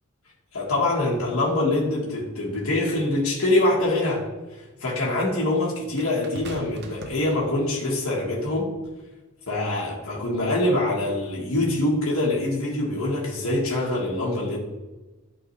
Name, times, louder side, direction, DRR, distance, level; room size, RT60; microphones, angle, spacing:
voice 1, 0.5-4.3 4.8-8.7 9.5-14.6, left 2 dB, 70° left, -5 dB, 1.4 m, -24 dB
sound 1, 6.0-7.9 8.8-9.0, right 1 dB, 50° right, 0.8 m, -40 dB
11.0 x 3.8 x 3.2 m, 1.2 s
head